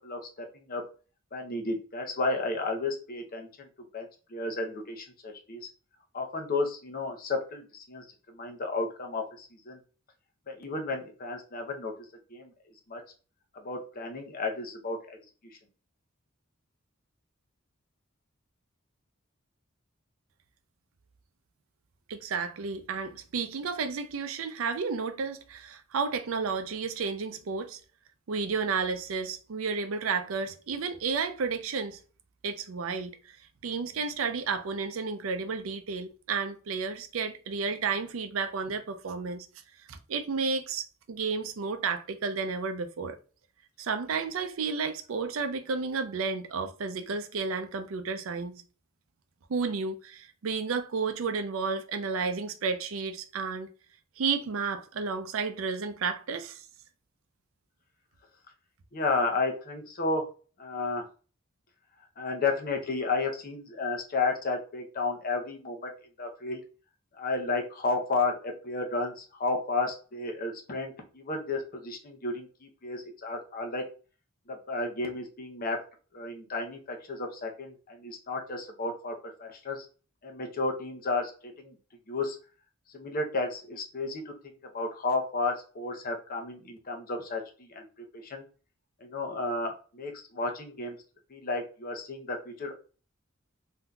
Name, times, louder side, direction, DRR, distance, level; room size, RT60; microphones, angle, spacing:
voice 1, 0.0-0.8 1.3-3.7 3.9-5.7 6.1-9.8 10.5-11.9 12.3-12.5 12.9-13.0 13.6-15.2 58.9-60.2 60.6-61.0 62.2-65.9 66.2-66.6 67.1-73.8 74.5-75.8 76.1-79.9 80.2-81.8 82.1-82.4 82.9-84.3 84.7-87.9 88.1-88.4 89.0-91.0 91.3-92.8, left 3 dB, 45° left, 0.7 m, -32 dB
voice 2, 22.1-27.8 28.3-32.0 32.4-33.4 33.6-39.5 39.9-43.2 43.8-48.6 49.5-53.7 54.2-56.6, right 5 dB, 75° right, 0.5 m, -32 dB
3.6 x 2.7 x 2.3 m
head